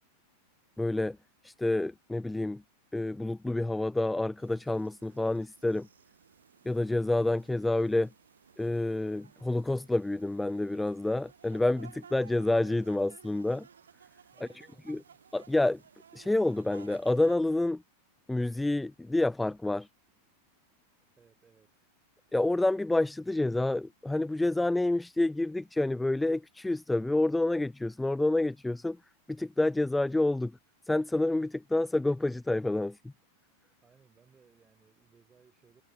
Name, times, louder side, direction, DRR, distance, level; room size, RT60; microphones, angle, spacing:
voice 1, 0.8-1.2 1.4-2.6 2.9-5.9 6.7-8.1 8.6-13.7 14.9-15.0 15.3-15.8 16.1-17.8 18.3-19.9 22.3-29.0 29.3-30.6 30.9-33.0, left 2 dB, 5° left, 0.3 m, -28 dB
sound 1, 4.4-17.4, right 7 dB, 70° right, 1.0 m, -57 dB
voice 2, 14.3-15.2 21.2-21.9 33.8-35.8, right 6 dB, 15° right, 5.4 m, -63 dB
figure-of-eight pair, 90°, 0 cm